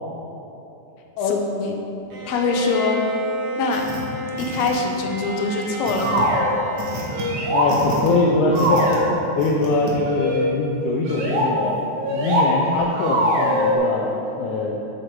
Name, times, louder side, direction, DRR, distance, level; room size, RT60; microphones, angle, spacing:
voice 1, 1.3-1.8 2.3-3.1 3.6-3.9 4.4-6.4, left 4 dB, 70° left, 2 dB, 1.9 m, -23 dB
Bowed string instrument, 2.1-8.2, right 2 dB, 90° right, 3.2 m, -32 dB
sound 1, 3.7-4.0 4.4-5.1 5.8-6.2 6.8-7.2 7.7-8.1 8.5-9.0 9.4-9.9, right 2 dB, 55° right, 1.5 m, -32 dB
sound 2, 6.0-6.5 7.1-7.7 8.5-9.1 10.1-10.5 11.0-11.5 12.0-12.5 13.0-13.8, equal, 70° right, 2.5 m, -21 dB
voice 2, 7.5-8.9 9.4-11.8 12.1-14.7, left 3 dB, 85° left, -2 dB, 2.1 m, -22 dB
9.0 x 6.3 x 4.7 m, 3.0 s
omnidirectional pair, 3.5 m